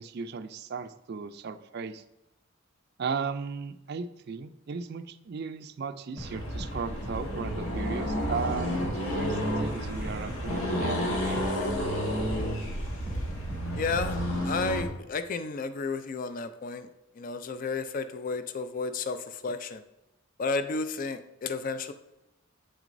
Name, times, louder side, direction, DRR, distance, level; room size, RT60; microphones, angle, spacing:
voice 1, 0.0-2.0 3.0-11.4, right 5 dB, 50° right, 11 dB, 0.3 m, -36 dB
Accelerating revving vroom, 6.2-14.9, equal, 80° left, 1.4 m, -31 dB
sound 1, 6.2-6.3 6.6-6.7 7.0-7.2 7.9-8.0 8.8-8.9 9.6-9.8 10.0-10.6 11.3-11.5 12.2-12.3 13.1-13.2 13.5-14.1, right 1 dB, 20° left, 1.8 m, -41 dB
voice 2, 13.8-14.2 14.4-16.9 17.2-19.8 20.4-21.9, left 4 dB, 40° left, 10 dB, 0.4 m, -32 dB
8.3 x 6.0 x 2.6 m, 0.92 s
head